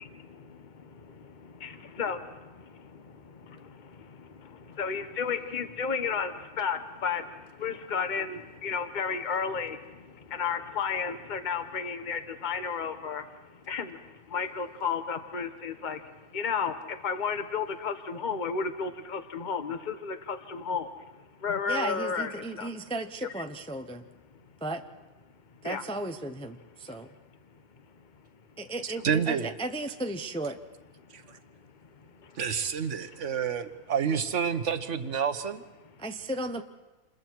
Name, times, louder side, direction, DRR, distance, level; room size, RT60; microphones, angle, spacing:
voice 1, 0.0-20.9 21.4-22.7 25.6-25.8 26.9-27.0 32.0-32.4, left 6 dB, 35° left, 8 dB, 1.2 m, -33 dB
voice 2, 21.7-24.0 24.6-24.8 25.6-27.1 28.6-30.6 36.0-36.6, right 2 dB, 5° left, 6 dB, 0.6 m, -35 dB
voice 3, 29.0-29.5 31.1-31.4 32.3-35.6, right 7 dB, 55° right, 9 dB, 1.4 m, -29 dB
28.0 x 21.5 x 4.6 m, 1.2 s
omnidirectional pair, 1.5 m